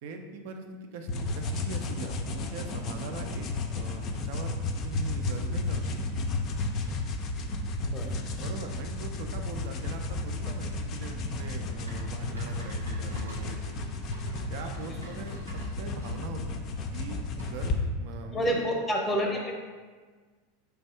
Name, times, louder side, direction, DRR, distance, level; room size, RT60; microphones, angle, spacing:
voice 1, 0.0-3.5 3.7-6.0 8.4-13.8 14.5-15.5 15.8-16.6 16.9-18.6, right 3 dB, 55° right, 5 dB, 0.4 m, -41 dB
sound 1, 1.1-17.8, left 2 dB, 40° left, 0.4 m, -33 dB
voice 2, 7.8-8.3 14.9-15.0 18.3-19.4, equal, 15° left, 1 dB, 0.7 m, -29 dB
sound 2, 11.9-16.2 17.4-17.8, left 2 dB, 85° right, 0.9 m, -45 dB
3.3 x 2.6 x 4.3 m, 1.5 s
figure-of-eight pair, 85°, 0 cm